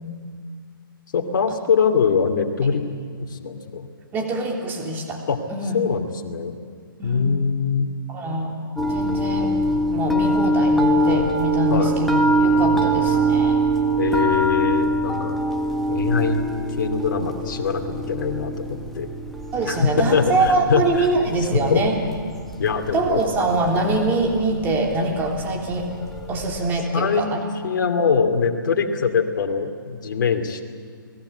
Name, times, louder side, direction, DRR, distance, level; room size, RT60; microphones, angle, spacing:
voice 1, 1.1-2.8 3.2-3.9 5.3-5.4 5.7-6.5 7.0-7.9 11.7-12.0 12.7-12.9 14.0-15.4 15.9-16.4 16.8-19.1 19.7-21.1 21.5-21.8 22.6-23.2 26.9-27.3 27.6-30.6, left 6 dB, 55° left, 3 dB, 2.7 m, -22 dB
voice 2, 4.1-5.2 5.5-5.8 7.0-7.3 8.1-8.5 8.9-9.5 9.9-13.6 19.5-22.0 22.9-25.9 26.3-27.4, right 2 dB, 15° right, 1 dB, 3.2 m, -24 dB
sound 1, 8.8-26.8, right 1 dB, ahead, 1.6 m, -24 dB
29.0 x 19.0 x 8.1 m, 2.1 s
hypercardioid pair, 145°, 12 cm